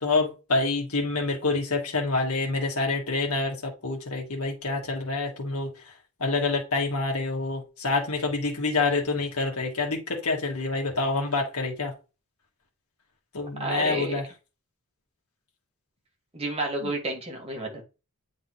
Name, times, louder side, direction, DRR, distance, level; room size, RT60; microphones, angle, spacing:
voice 1, 0.0-5.7 6.2-11.9 13.3-14.2 16.8-16.9, left 3 dB, 75° left, 1.7 m, -27 dB
voice 2, 13.6-14.2 16.3-17.8, right 2 dB, 30° right, 1.8 m, -30 dB
8.4 x 3.9 x 3.1 m
head